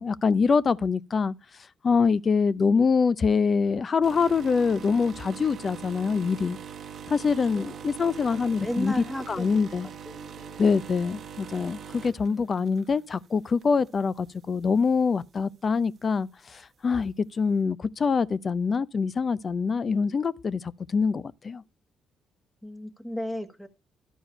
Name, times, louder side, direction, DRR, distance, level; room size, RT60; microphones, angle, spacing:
voice 1, 0.0-1.3 1.8-6.6 7.1-8.9 9.3-9.9 10.6-21.6, left 5 dB, 40° left, 0.6 m, -25 dB
sound 1, 4.0-13.2 13.6-13.9 14.8-14.9, right 7 dB, 60° right, 0.9 m, -42 dB
voice 2, 7.5-9.7 10.0-10.6 12.2-12.9 22.6-23.7, equal, 10° left, 1.5 m, -36 dB
12.0 x 4.7 x 5.4 m
cardioid pair, 90°, 0 cm